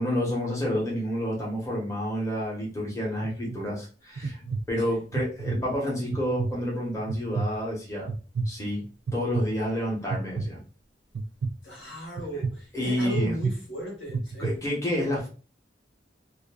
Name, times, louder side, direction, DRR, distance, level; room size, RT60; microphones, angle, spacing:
voice 1, 0.0-4.4 4.7-8.1 8.4-8.8 9.1-10.6 12.3-12.4 12.7-13.3 14.4-15.3, equal, 15° left, 0.9 m, -29 dB
sound 1, 3.2-3.6 4.2-4.6 5.1-5.6 6.1-6.5 7.1-7.5 8.1-8.5 9.1-9.4 10.1-10.5 11.1-11.5 12.2-12.5 13.1-13.5 14.1-14.5, right 4 dB, 75° right, 0.4 m, -29 dB
voice 2, 11.6-14.5, equal, 75° left, 1.4 m, -36 dB
2.5 x 2.5 x 2.3 m
head